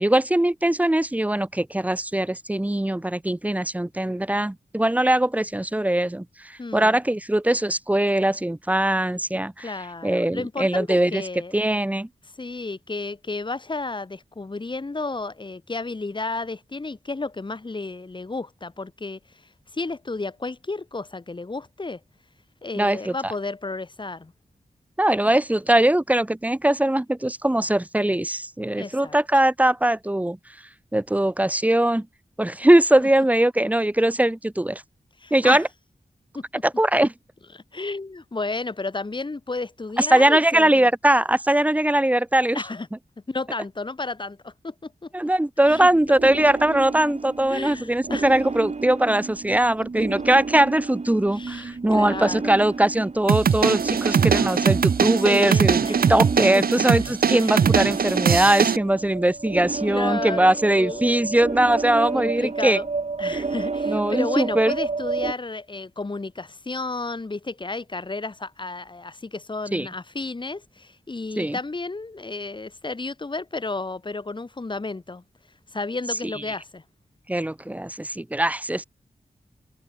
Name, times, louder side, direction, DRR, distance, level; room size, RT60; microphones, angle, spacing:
voice 1, 0.0-9.7 10.0-11.2 11.5-12.1 22.8-23.3 25.0-30.4 30.9-32.1 32.4-34.8 35.3-35.7 36.6-37.1 40.0-42.6 45.1-55.8 56.1-62.8 63.9-64.7 69.7-69.9 71.4-71.6 77.3-78.8, right 1 dB, 10° right, 0.9 m, -21 dB
voice 2, 6.6-7.0 9.6-11.5 12.3-22.0 22.6-24.3 28.7-29.2 33.0-33.1 35.2-35.6 36.3-36.5 37.5-40.9 42.5-42.9 43.3-45.1 45.6-45.9 47.5-48.3 49.8-49.9 51.3-52.5 55.2-56.1 56.5-56.6 57.4-57.6 59.9-61.2 62.1-62.9 63.2-75.2 75.7-76.8, left 3 dB, 30° left, 3.3 m, -32 dB
sound 1, 45.6-65.3, right 4 dB, 50° right, 7.5 m, -31 dB
sound 2, 53.3-58.8, right 7 dB, 85° right, 0.9 m, -21 dB
wide cardioid pair, 130°, 15 cm